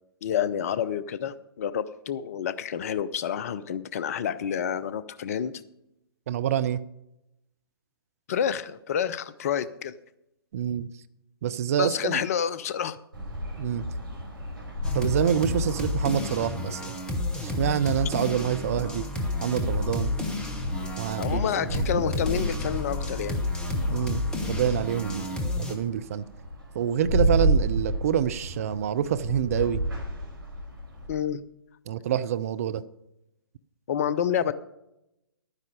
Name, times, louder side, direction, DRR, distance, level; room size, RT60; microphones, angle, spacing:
voice 1, 0.2-5.5 8.3-9.9 11.8-13.0 21.2-23.4 31.1-31.4 33.9-34.5, left 8 dB, 35° left, 15 dB, 0.6 m, -28 dB
voice 2, 6.3-6.8 10.5-10.9 11.4-12.2 13.6-13.8 14.9-17.0 17.4-19.1 19.4-20.1 21.0-22.0 23.9-26.3 26.7-29.8 31.9-32.8, right 9 dB, 35° right, 13 dB, 0.5 m, -27 dB
sound 1, 13.1-31.1, equal, 60° right, 4.3 m, -32 dB
sound 2, 14.8-25.8, left 2 dB, 5° left, 1.1 m, -31 dB
12.0 x 9.8 x 4.9 m, 0.86 s
figure-of-eight pair, 125°, 13 cm